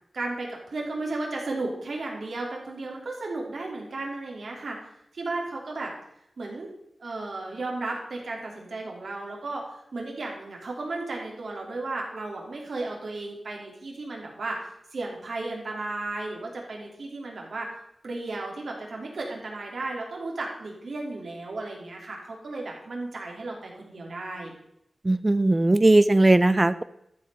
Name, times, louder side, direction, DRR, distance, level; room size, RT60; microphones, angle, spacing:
voice 1, 0.1-4.8 5.1-5.9 6.4-6.7 7.0-17.7 18.0-24.5, right 2 dB, 75° right, -1 dB, 2.8 m, -34 dB
voice 2, 25.0-26.8, right 2 dB, 25° right, 15 dB, 0.4 m, -19 dB
12.5 x 5.2 x 5.5 m, 0.77 s
wide cardioid pair, 110°, 0 cm